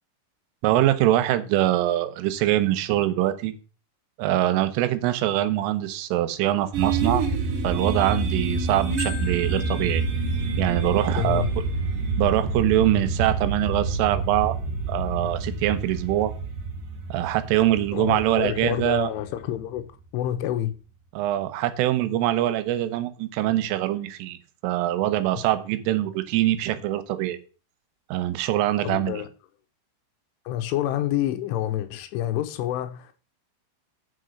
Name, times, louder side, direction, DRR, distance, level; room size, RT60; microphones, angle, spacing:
voice 1, 0.6-3.5 4.2-7.3 7.6-10.0 10.6-11.4 12.2-14.6 14.9-16.3 17.1-19.1 21.2-24.4 24.6-27.4 28.1-29.2, right 14 dB, 85° right, 3.5 m, -23 dB
sound 1, 6.7-19.6, right 4 dB, 60° right, 2.5 m, -27 dB
Marimba xylophone, 9.0-11.0, left 4 dB, 25° right, 2.2 m, -40 dB
voice 2, 11.2-11.5 17.9-19.9 20.1-20.7 28.8-29.3 30.5-33.2, left 12 dB, 80° left, 3.3 m, -28 dB
7.7 x 6.3 x 6.4 m
omnidirectional pair, 5.7 m